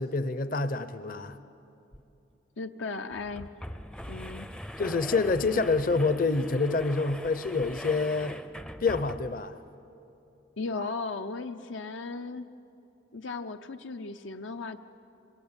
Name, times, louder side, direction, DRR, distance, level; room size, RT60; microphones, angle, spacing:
voice 1, 0.0-1.4 4.8-8.4 8.8-9.6, left 3 dB, 45° left, 12 dB, 0.8 m, -27 dB
sound 1, 1.9-2.0 2.3-2.4 3.1-9.5, equal, 5° left, 0.5 m, -42 dB
voice 2, 2.6-3.5 4.1-4.5 10.6-12.5 13.1-14.8, left 3 dB, 75° left, 8 dB, 0.7 m, -36 dB
26.5 x 22.0 x 8.9 m, 2.8 s
head